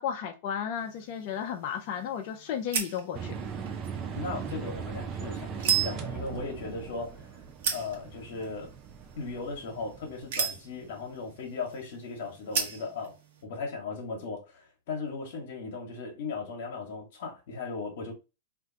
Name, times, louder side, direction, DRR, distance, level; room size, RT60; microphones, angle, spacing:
voice 1, 0.0-3.3, left 8 dB, 50° left, 0.5 m, -33 dB
sound 1, 0.7-13.4, right 7 dB, 65° right, 1.0 m, -37 dB
sound 2, 3.1-11.2, right 6 dB, 30° right, 0.5 m, -39 dB
voice 2, 4.1-7.3 7.7-8.7 9.2-13.2 13.4-18.1, left 4 dB, 65° left, 1.0 m, -37 dB
2.5 x 2.2 x 3.8 m
hypercardioid pair, 130°, 0 cm